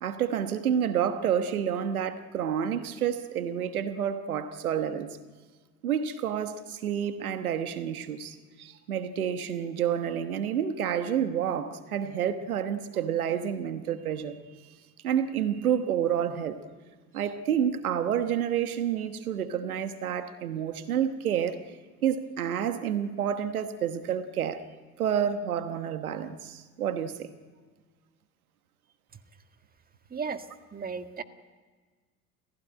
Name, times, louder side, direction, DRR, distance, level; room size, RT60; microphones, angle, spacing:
voice 1, 0.0-5.2 5.8-14.4 14.6-14.8 15.0-16.6 17.1-21.6 22.0-24.6 25.0-27.3, right 9 dB, 85° right, 1.3 m, -29 dB
voice 2, 30.1-30.4 30.7-31.2, right 5 dB, 20° right, 1.8 m, -34 dB
29.5 x 15.5 x 9.9 m
hypercardioid pair, 70°, 42 cm